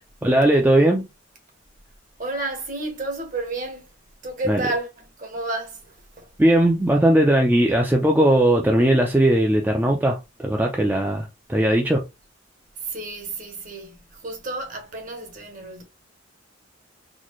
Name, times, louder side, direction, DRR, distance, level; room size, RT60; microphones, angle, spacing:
voice 1, 0.2-1.1 4.5-4.6 6.4-12.0, right 1 dB, 10° right, 0.4 m, -18 dB
voice 2, 2.2-3.9 4.2-6.3 12.8-15.8, right 2 dB, 45° right, 1.2 m, -31 dB
4.1 x 2.3 x 3.1 m
head